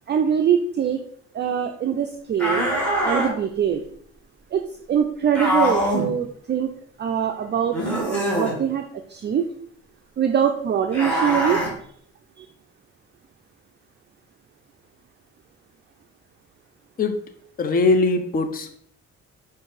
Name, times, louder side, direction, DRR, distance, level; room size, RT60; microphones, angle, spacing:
voice 1, 0.1-1.0 1.3-2.7 3.0-3.8 4.5-6.7 7.0-9.5 10.2-11.6 12.4-12.5, right 8 dB, 35° right, 5 dB, 0.4 m, -23 dB
sound 1, 2.4-3.3 5.3-6.1 7.7-8.6 10.9-11.7, equal, 5° left, 1.7 m, -23 dB
voice 2, 17.6-18.8, left 3 dB, 30° left, 6 dB, 0.6 m, -21 dB
5.1 x 2.6 x 3.8 m, 0.62 s
cardioid pair, 90°, 30 cm